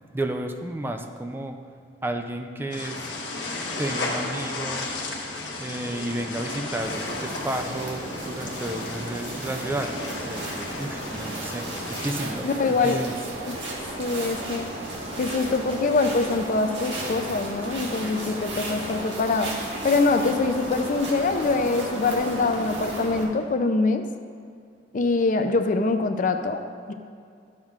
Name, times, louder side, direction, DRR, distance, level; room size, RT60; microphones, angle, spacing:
voice 1, 0.1-1.6 2.0-3.1 3.8-4.9 5.6-9.9 10.3-13.2, right 1 dB, 10° right, 5 dB, 0.4 m, -32 dB
sound 1, 2.7-12.1, left 2 dB, 75° left, 1.2 m, -34 dB
sound 2, 6.8-23.2, right 1 dB, 80° right, 1.5 m, -34 dB
voice 2, 12.4-13.0 13.5-13.6 14.0-14.7 15.2-19.6 19.8-24.1 24.9-26.6 26.9-27.0, left 3 dB, 45° left, 7 dB, 0.5 m, -24 dB
12.0 x 7.2 x 2.4 m, 2.3 s
head